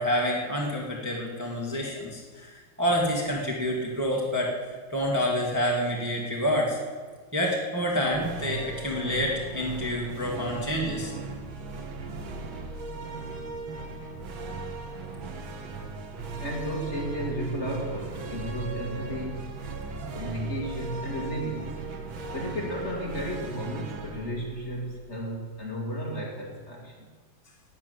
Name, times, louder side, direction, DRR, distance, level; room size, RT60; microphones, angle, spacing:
voice 1, 0.0-4.5 4.9-6.8 7.3-11.1, equal, 10° right, -2 dB, 2.0 m, -28 dB
sound 1, 8.1-25.5, right 3 dB, 85° right, 2.1 m, -38 dB
voice 2, 16.4-19.5 20.1-21.8 22.3-27.0, equal, 35° left, -1 dB, 2.4 m, -33 dB
12.0 x 7.4 x 9.5 m, 1.5 s
omnidirectional pair, 2.1 m